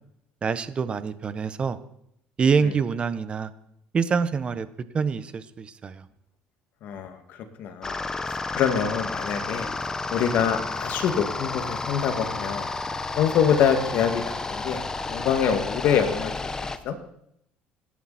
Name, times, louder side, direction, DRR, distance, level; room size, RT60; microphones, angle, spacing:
voice 1, 0.4-1.8 2.4-3.5 3.9-4.7 4.9-6.0, right 5 dB, 30° right, 13 dB, 1.2 m, -25 dB
voice 2, 6.8-8.0 8.3-9.7 10.1-12.7 13.2-14.8 15.1-16.5 16.8-17.0, left 8 dB, 65° left, 6 dB, 2.5 m, -25 dB
sound 1, 7.8-16.8, left 3 dB, 20° left, 1.2 m, -31 dB
27.5 x 11.0 x 4.4 m, 0.74 s
cardioid pair, 110°, 3 cm